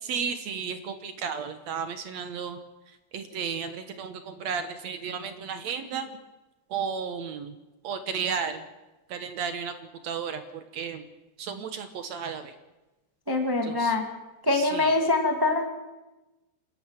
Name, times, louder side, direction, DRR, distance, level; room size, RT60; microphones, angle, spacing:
voice 1, 0.0-2.6 3.1-6.1 6.7-7.5 7.8-8.6 9.1-11.1 11.4-12.5 13.6-13.9 14.5-14.9, right 6 dB, 70° right, 9 dB, 1.7 m, -33 dB
voice 2, 13.3-14.1 14.4-15.6, left 2 dB, 15° right, 3 dB, 0.9 m, -24 dB
27.5 x 12.0 x 8.9 m, 1.1 s
omnidirectional pair, 4.7 m